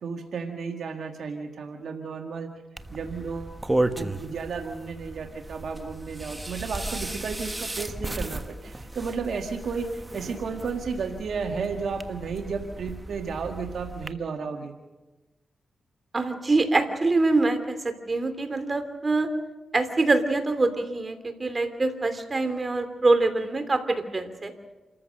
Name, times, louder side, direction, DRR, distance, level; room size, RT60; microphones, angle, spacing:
voice 1, 0.0-2.5 2.9-3.5 4.0-14.7, right 5 dB, 80° right, 5 dB, 1.6 m, -33 dB
sound 1, 2.8-14.1, right 1 dB, 20° right, 1.2 m, -34 dB
voice 2, 16.1-19.3 19.7-24.5, right 3 dB, 40° right, 9 dB, 2.9 m, -24 dB
28.0 x 14.5 x 6.5 m, 1.1 s
cardioid pair, 60°, 0 cm